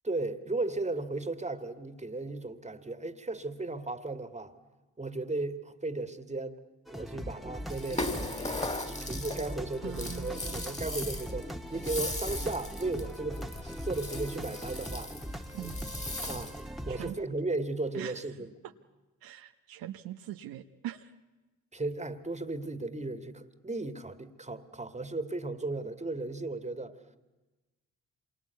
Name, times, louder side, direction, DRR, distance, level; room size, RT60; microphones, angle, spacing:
voice 1, 0.0-4.5 5.0-6.6 6.9-15.1 16.3-16.6 16.9-18.5 21.7-26.9, right 2 dB, 20° right, 10 dB, 2.1 m, -35 dB
sound 1, 6.9-17.1, equal, ahead, 1.5 m, -40 dB
Rattle (instrument), 7.7-16.7, left 2 dB, 20° left, 3.0 m, -38 dB
voice 2, 9.8-10.8 15.5-15.8 16.9-17.1 17.9-18.2 19.2-21.1, right 12 dB, 75° right, 6 dB, 1.1 m, -42 dB
27.0 x 23.0 x 8.3 m, 1.2 s
hypercardioid pair, 50°, 36 cm